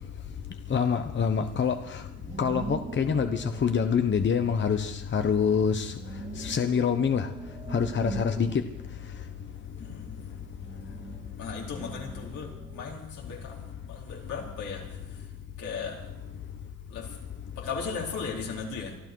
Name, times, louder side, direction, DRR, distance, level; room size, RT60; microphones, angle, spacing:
voice 1, 0.7-2.0 2.4-5.9 6.4-7.3 7.7-8.6, left 6 dB, 40° left, 8 dB, 1.0 m, -26 dB
sound 1, 1.9-5.0 5.5-9.6 9.9-13.0, right 5 dB, 20° right, 0.5 m, -42 dB
voice 2, 9.7-10.2 11.4-15.3 15.6-16.0 16.9-17.2 17.6-19.0, left 5 dB, 80° left, -3 dB, 4.6 m, -37 dB
24.5 x 12.5 x 4.7 m, 0.93 s
cardioid pair, 90°, 30 cm